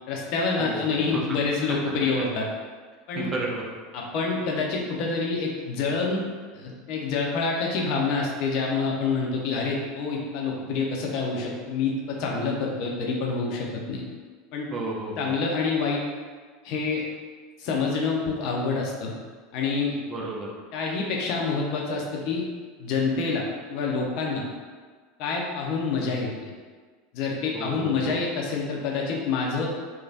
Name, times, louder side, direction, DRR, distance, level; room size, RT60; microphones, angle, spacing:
voice 1, 0.1-2.5 3.1-3.3 3.9-6.2 6.5-14.0 14.5-14.7 15.2-16.0 16.6-17.0 17.6-19.1 19.5-20.0 20.7-22.4 22.8-24.4 25.2-26.5 27.1-29.7, left 4 dB, 60° left, -1 dB, 0.6 m, -27 dB
voice 2, 0.6-1.4 3.1-3.6 14.7-15.3 20.1-20.5 27.5-28.2, right 2 dB, 30° right, -2 dB, 0.7 m, -33 dB
3.2 x 2.2 x 2.6 m, 1.5 s
hypercardioid pair, 80°, 0 cm